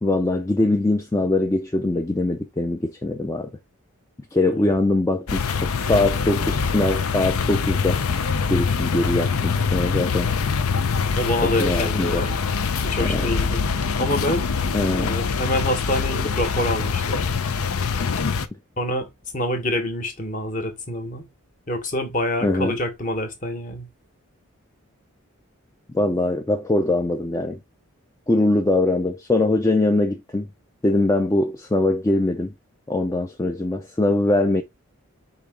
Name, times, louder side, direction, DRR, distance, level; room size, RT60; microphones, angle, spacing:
voice 1, 0.0-3.5 4.3-8.0 8.5-10.3 11.4-12.3 13.0-13.2 14.7-15.2 22.4-22.7 25.9-27.6 28.3-30.5 30.8-32.5 32.9-34.6, left 2 dB, 15° left, 0.4 m, -22 dB
voice 2, 4.5-4.8 11.2-12.4 12.8-13.6 14.0-14.5 14.9-17.2 18.8-19.1 19.3-21.3 21.7-23.9, left 1 dB, 35° left, 1.2 m, -26 dB
Plane over Parc Merl, 5.3-18.5, left 5 dB, 80° left, 0.6 m, -24 dB
5.0 x 2.9 x 3.5 m
head